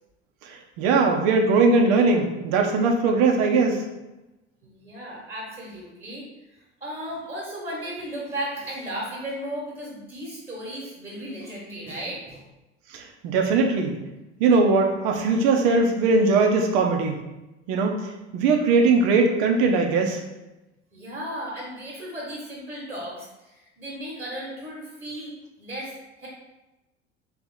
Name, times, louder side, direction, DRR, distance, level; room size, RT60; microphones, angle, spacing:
voice 1, 0.4-3.9 12.9-14.0 14.4-17.2 17.7-20.2, right 3 dB, 60° right, 2 dB, 0.8 m, -20 dB
voice 2, 4.6-6.3 6.8-12.4 20.9-25.9 26.2-26.3, right 1 dB, 15° right, -5 dB, 1.5 m, -35 dB
3.4 x 3.0 x 3.9 m, 1.0 s
hypercardioid pair, 75°, 33 cm